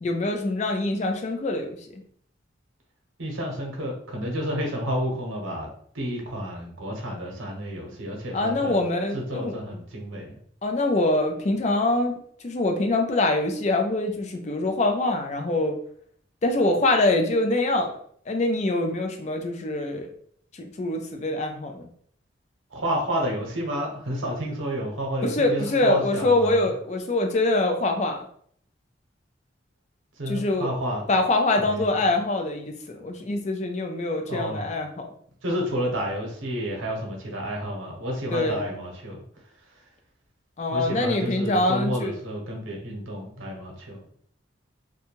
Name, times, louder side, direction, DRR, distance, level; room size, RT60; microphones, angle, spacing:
voice 1, 0.0-1.7 8.3-9.5 10.6-12.2 12.4-15.8 16.4-17.9 18.3-20.1 20.6-21.9 25.2-28.2 30.3-30.7 31.1-35.1 38.3-38.6 40.6-42.1, left 2 dB, 35° left, 4 dB, 0.4 m, -24 dB
voice 2, 3.2-5.7 5.9-8.8 9.1-10.4 22.7-26.7 30.2-31.0 31.6-32.0 34.3-34.7 35.4-39.2 40.7-44.0, equal, 80° right, 0 dB, 0.8 m, -30 dB
2.6 x 2.2 x 2.9 m, 0.62 s
head